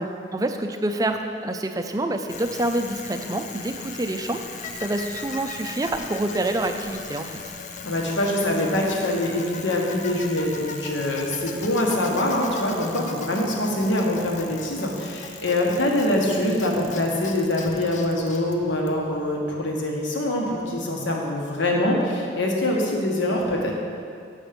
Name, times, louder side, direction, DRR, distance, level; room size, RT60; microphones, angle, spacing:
voice 1, 0.0-7.3, right 1 dB, 20° right, 6 dB, 0.4 m, -27 dB
Bicycle, 2.3-19.3, left 5 dB, 40° left, 0.5 m, -38 dB
voice 2, 7.8-23.7, left 1 dB, 75° left, 0 dB, 1.2 m, -24 dB
7.2 x 6.0 x 5.1 m, 2.4 s
head